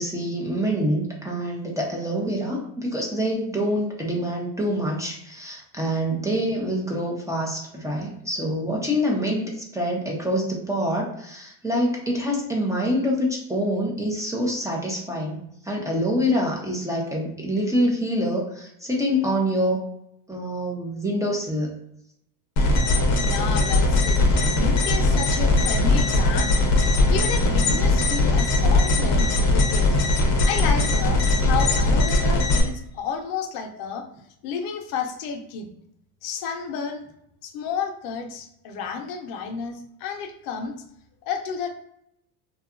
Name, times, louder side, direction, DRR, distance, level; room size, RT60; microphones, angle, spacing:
voice 1, 0.0-19.8 20.3-21.7 23.6-23.7, equal, 5° right, -2 dB, 0.4 m, -26 dB
sound 1, 22.6-32.6, left 2 dB, 40° left, 0.6 m, -20 dB
voice 2, 23.2-24.2 24.5-26.6 26.9-29.9 30.5-34.0 34.4-35.7 36.2-37.0 37.4-40.8 41.3-41.7, left 6 dB, 85° left, 3 dB, 0.7 m, -31 dB
2.7 x 2.2 x 2.4 m, 0.77 s
supercardioid pair, 115°, 44 cm